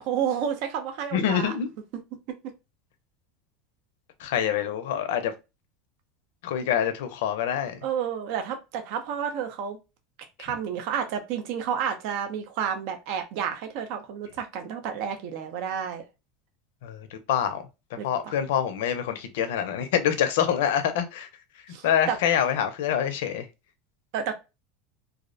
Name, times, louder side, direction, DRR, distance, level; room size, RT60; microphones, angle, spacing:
voice 1, 0.1-1.5 7.8-9.8 10.4-16.0 18.0-18.3 21.7-22.2 24.1-24.3, right 8 dB, 60° right, 0.5 m, -30 dB
voice 2, 1.1-1.7 4.2-5.3 6.4-7.8 16.8-17.6 18.0-21.3 21.8-23.4, left 9 dB, 80° left, 0.5 m, -26 dB
2.4 x 2.0 x 2.5 m
supercardioid pair, 145°, 0 cm